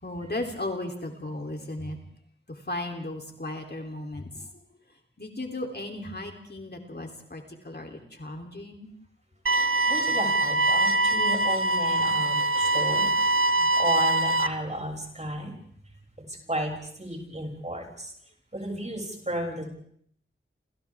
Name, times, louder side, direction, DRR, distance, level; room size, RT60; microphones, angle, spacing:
voice 1, 0.0-2.0 2.5-4.5 5.2-8.9 13.6-13.7, left 2 dB, 50° left, 2 dB, 3.4 m, -36 dB
sound 1, 9.5-14.5, right 2 dB, 75° right, 0.9 m, -23 dB
voice 2, 9.9-13.1 13.7-15.5 16.2-18.1 18.5-19.7, equal, 35° right, 1 dB, 7.0 m, -33 dB
29.5 x 28.0 x 3.7 m, 0.64 s
wide cardioid pair, 50°, 21 cm